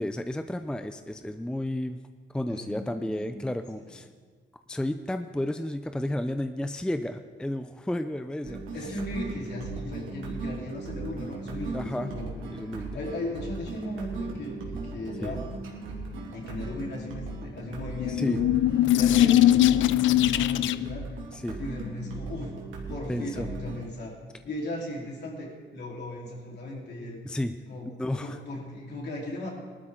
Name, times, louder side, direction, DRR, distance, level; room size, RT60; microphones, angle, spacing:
voice 1, 0.0-2.0 2.3-4.1 4.7-8.6 11.7-12.1 12.5-13.0 15.2-15.4 18.1-18.4 21.3-21.6 23.1-23.5 27.2-27.5 28.0-28.4, left 1 dB, 5° left, 9 dB, 0.5 m, -32 dB
voice 2, 2.5-3.5 8.5-12.3 12.5-15.4 16.3-18.4 18.9-21.1 21.6-22.5 22.9-24.2 24.4-27.2 27.7-27.9 28.2-29.5, left 1 dB, 60° left, -2 dB, 4.0 m, -37 dB
sound 1, 8.4-23.8, right 3 dB, 80° right, 2.7 m, -38 dB
sound 2, 17.8-21.0, left 13 dB, 75° left, 0.4 m, -21 dB
19.0 x 12.5 x 3.8 m, 1.5 s
cardioid pair, 90°, 20 cm